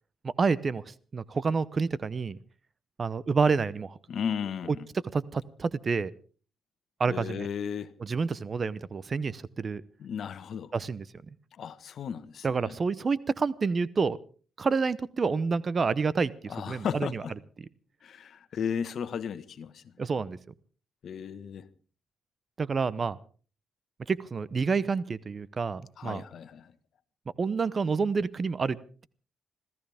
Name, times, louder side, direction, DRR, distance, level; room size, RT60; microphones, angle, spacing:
voice 1, 0.2-2.4 3.0-4.0 5.1-6.1 7.0-7.5 8.0-9.8 10.7-11.0 12.4-14.2 14.6-17.2 20.0-20.4 22.6-23.2 24.1-26.2 27.4-28.8, right 5 dB, 35° right, 19 dB, 0.8 m, -28 dB
voice 2, 4.1-4.9 7.1-7.9 10.0-10.7 11.6-12.8 16.5-17.3 18.0-19.8 21.0-21.6 26.0-26.7, left 7 dB, 60° left, 13 dB, 1.4 m, -35 dB
26.0 x 15.0 x 3.5 m, 0.39 s
cardioid pair, 90°, 0 cm